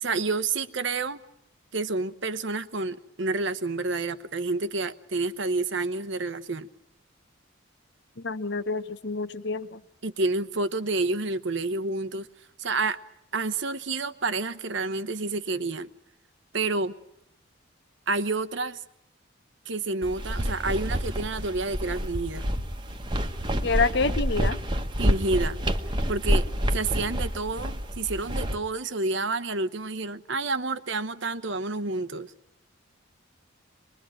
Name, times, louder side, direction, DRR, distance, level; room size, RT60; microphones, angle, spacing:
voice 1, 0.0-1.2 1.7-6.7 10.0-12.3 12.6-13.0 13.3-15.9 16.5-16.9 18.1-18.8 19.7-22.4 25.0-25.6 26.1-26.5 26.7-32.3, right 3 dB, 60° right, 1.1 m, -29 dB
voice 2, 8.2-9.8 23.6-24.6, left 4 dB, 55° left, 1.1 m, -27 dB
sound 1, 20.0-28.5, equal, 20° right, 1.3 m, -28 dB
24.5 x 21.5 x 9.0 m
head